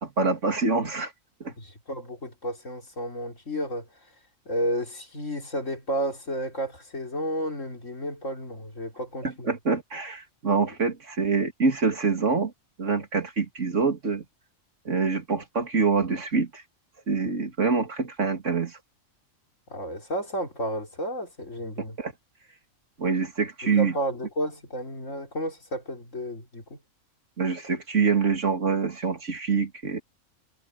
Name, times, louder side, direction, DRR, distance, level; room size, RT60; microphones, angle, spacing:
voice 1, 0.0-1.1 1.4-1.5 9.2-12.5 12.8-14.2 14.8-16.6 17.1-18.8 22.0-22.1 23.0-23.9 27.4-30.0, right 4 dB, 60° right, 2.9 m, -25 dB
voice 2, 1.6-4.1 4.5-9.6 19.7-22.0 23.6-26.8, equal, 65° left, 4.4 m, -32 dB
omnidirectional pair, 1.4 m